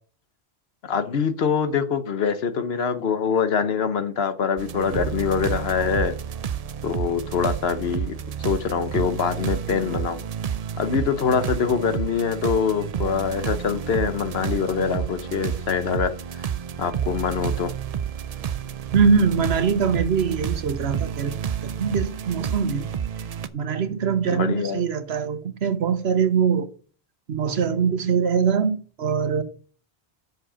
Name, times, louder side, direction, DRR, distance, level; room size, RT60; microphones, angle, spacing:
voice 1, 0.9-6.2 6.8-8.1 8.4-10.2 10.8-16.1 16.8-17.7 24.3-24.8, left 6 dB, 70° left, 1.1 m, -24 dB
Night - Soft Techno, 4.6-23.5, right 8 dB, 50° right, 0.5 m, -30 dB
voice 2, 18.9-21.4 21.6-22.9 23.5-26.7 27.3-29.4, right 6 dB, 75° right, 1.2 m, -22 dB
7.5 x 6.3 x 5.0 m
omnidirectional pair, 1.1 m